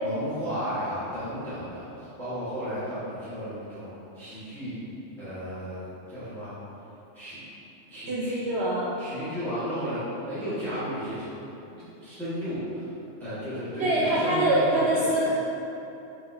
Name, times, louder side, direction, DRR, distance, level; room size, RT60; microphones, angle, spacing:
voice 1, 0.0-4.8 5.2-6.5 7.1-7.4 7.9-8.4 9.0-11.2 12.0-12.9 13.2-15.3, equal, ahead, -16 dB, 1.4 m, -33 dB
voice 2, 8.1-8.9 13.8-15.3, right 1 dB, 65° right, -6 dB, 0.8 m, -24 dB
4.4 x 3.7 x 2.6 m, 2.9 s
omnidirectional pair, 1.3 m